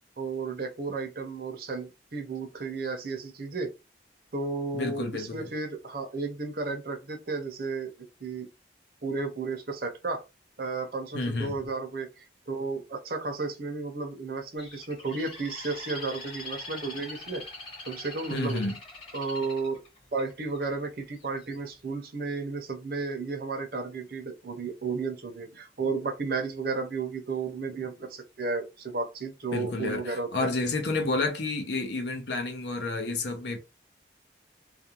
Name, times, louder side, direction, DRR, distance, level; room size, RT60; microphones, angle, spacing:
voice 1, 0.2-3.7 4.3-7.9 8.2-8.5 9.0-10.2 10.6-17.4 17.9-18.6 19.1-19.8 20.1-30.5, right 4 dB, 55° right, 0.6 m, -33 dB
voice 2, 4.7-5.5 11.1-11.6 18.3-18.8 29.5-33.6, left 3 dB, 70° left, 0.7 m, -30 dB
Bird, 14.6-20.6 21.2-21.6, left 2 dB, 30° left, 1.1 m, -42 dB
2.5 x 2.2 x 2.9 m
head